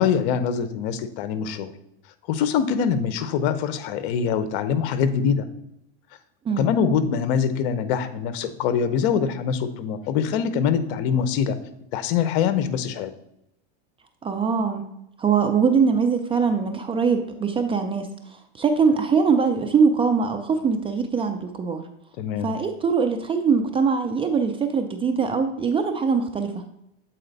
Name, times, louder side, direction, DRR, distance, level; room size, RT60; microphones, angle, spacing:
voice 1, 0.0-1.7 2.3-5.5 6.6-11.6 11.9-13.1 22.2-22.5, left 7 dB, 60° left, 12 dB, 0.8 m, -23 dB
voice 2, 14.2-14.8 15.2-18.1 18.6-21.8 22.4-26.5, right 5 dB, 15° right, 6 dB, 0.5 m, -22 dB
7.8 x 4.2 x 4.0 m, 0.80 s
supercardioid pair, 120°, 31 cm